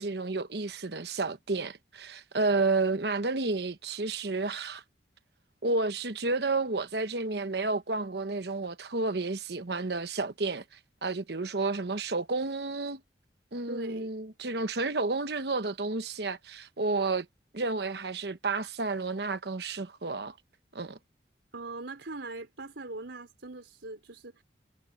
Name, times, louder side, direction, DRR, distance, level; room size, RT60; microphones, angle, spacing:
voice 1, 0.0-4.8 5.6-10.6 11.0-13.0 13.5-17.3 17.5-20.3 20.7-21.0, right 3 dB, 65° right, 1.1 m, -31 dB
voice 2, 13.7-14.1 21.5-24.4, right 2 dB, 85° right, 4.0 m, -41 dB
head